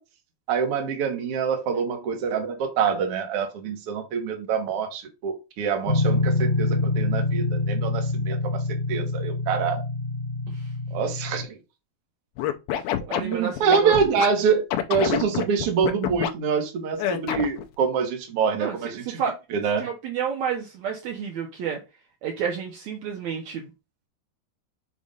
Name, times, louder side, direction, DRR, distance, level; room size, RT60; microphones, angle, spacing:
voice 1, 0.5-8.6 8.9-9.8 10.9-11.5 13.2-14.6 14.9-19.2 19.5-19.9, right 6 dB, 60° right, 1.5 m, -25 dB
sound 1, 5.9-11.4, left 2 dB, 20° left, 1.3 m, -26 dB
Scratching (performance technique), 12.4-14.3 14.7-16.3 17.0-17.6, left 11 dB, 80° left, 2.5 m, -26 dB
voice 2, 13.1-14.0 18.6-18.8 19.0-19.4 19.8-21.8 22.2-23.7, right 7 dB, 80° right, 1.6 m, -30 dB
7.1 x 2.5 x 5.3 m
omnidirectional pair, 4.4 m